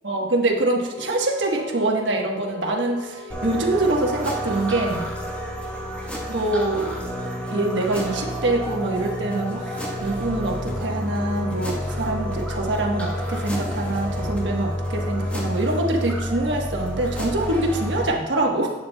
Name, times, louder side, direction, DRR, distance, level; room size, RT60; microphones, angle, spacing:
voice 1, 0.0-5.1 6.3-7.0 7.5-9.7 10.0-18.7, right 2 dB, 85° right, 1 dB, 1.3 m, -24 dB
sound 1, 0.8-15.6, left 4 dB, 45° left, 1.2 m, -39 dB
sound 2, 3.3-18.1, equal, 5° left, 1.3 m, -29 dB
11.5 x 8.5 x 2.3 m, 1.3 s
head